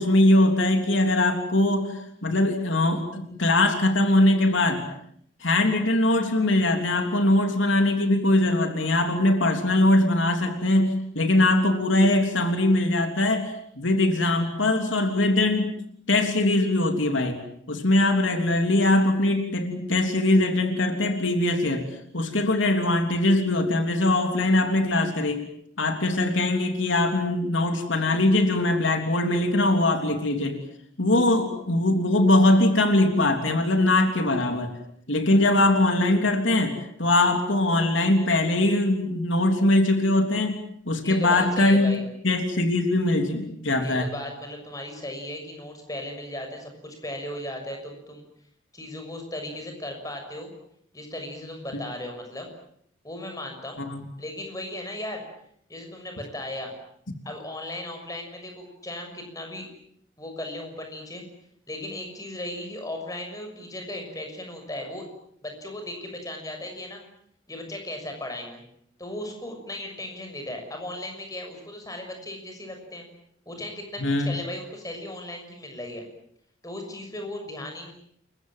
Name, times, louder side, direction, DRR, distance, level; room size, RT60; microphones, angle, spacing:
voice 1, 0.0-4.9 5.4-15.7 16.1-17.4 17.7-21.8 22.1-25.4 25.8-30.6 31.0-34.7 35.1-40.6 40.8-41.9 42.2-44.1 53.8-54.0 74.0-74.3, left 1 dB, 75° left, 5 dB, 3.4 m, -22 dB
voice 2, 41.0-42.0 43.8-48.2 48.7-50.5 50.9-52.5 53.0-53.8 54.2-55.2 55.7-56.7 57.2-59.7 60.2-61.2 61.7-65.1 65.4-67.0 67.5-68.6 69.0-73.0 73.4-76.0 76.6-77.9, left 1 dB, 20° left, 4 dB, 6.5 m, -36 dB
29.0 x 23.5 x 7.6 m, 0.68 s
head